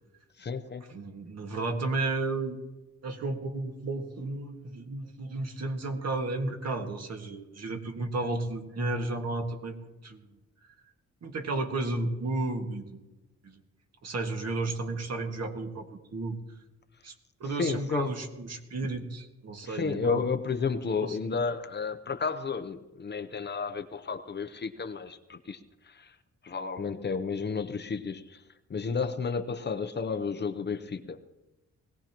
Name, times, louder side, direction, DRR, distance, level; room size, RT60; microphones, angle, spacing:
voice 1, 0.4-0.8 17.5-18.1 19.6-25.6 25.9-26.1 26.4-28.4 28.7-31.2, left 5 dB, 35° left, 0.7 m, -32 dB
voice 2, 0.9-2.6 3.0-10.2 11.2-13.1 13.4-13.6 14.0-16.4 17.0-17.1 17.4-20.2 21.0-21.2, right 2 dB, 60° right, 1.9 m, -33 dB
20.5 x 17.0 x 3.0 m
wide cardioid pair, 150°, 29 cm